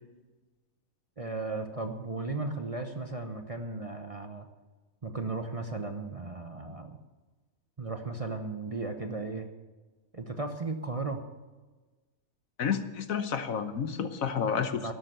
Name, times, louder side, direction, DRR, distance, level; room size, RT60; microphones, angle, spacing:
voice 1, 1.2-4.5 5.0-7.0 7.8-9.5 10.1-11.2 14.8-14.9, right 3 dB, 25° right, 6 dB, 0.9 m, -35 dB
voice 2, 12.6-14.9, left 7 dB, 65° left, 11 dB, 1.4 m, -30 dB
12.0 x 12.0 x 6.7 m, 1.3 s
omnidirectional pair, 1.6 m